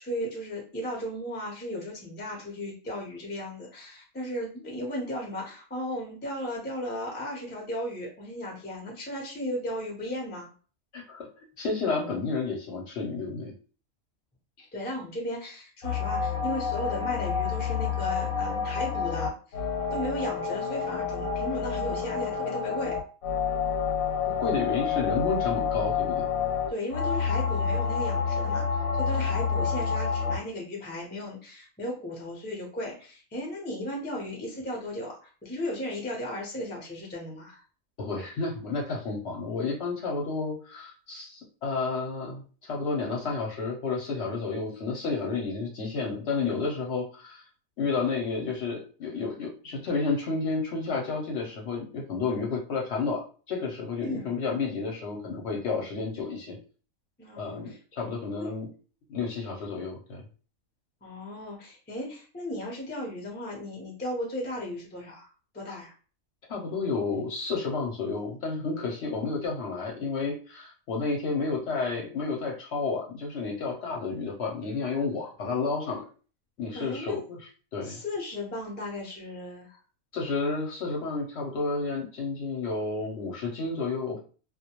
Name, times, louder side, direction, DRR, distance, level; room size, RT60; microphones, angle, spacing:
voice 1, 0.0-10.5 14.6-19.6 19.9-23.0 26.7-37.6 54.0-54.3 57.2-57.8 58.4-58.5 61.0-65.3 65.5-65.9 76.7-77.2 77.8-79.8, left 1 dB, 15° left, -2 dB, 0.3 m, -35 dB
voice 2, 10.9-11.3 11.6-13.5 24.4-26.2 38.0-47.4 47.8-56.6 57.4-58.7 59.1-60.2 65.7-65.8 66.5-76.0 76.6-78.0 80.1-84.2, left 4 dB, 60° left, -1 dB, 0.7 m, -31 dB
sound 1, 15.8-30.4, left 6 dB, 90° left, 1.0 m, -28 dB
2.2 x 2.1 x 2.8 m, 0.38 s
omnidirectional pair, 1.4 m